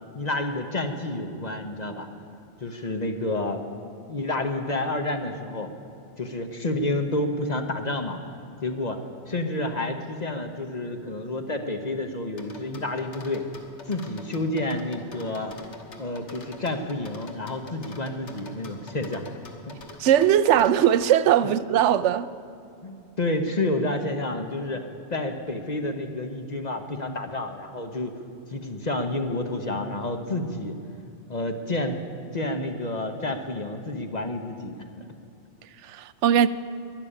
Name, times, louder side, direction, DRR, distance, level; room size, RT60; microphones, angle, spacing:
voice 1, 0.1-2.1 2.6-3.6 4.1-5.7 6.2-8.2 8.6-13.5 13.9-15.6 16.0-19.2 21.4-21.5 22.8-24.8 25.1-28.1 28.5-30.7 31.3-32.0 32.3-35.0, left 2 dB, 40° left, 1.0 m, -29 dB
sound 1, 12.4-21.1, left 3 dB, 75° left, 1.7 m, -44 dB
voice 2, 20.0-22.3 35.8-36.5, right 10 dB, 80° right, 0.9 m, -20 dB
12.0 x 11.0 x 9.9 m
omnidirectional pair, 1.2 m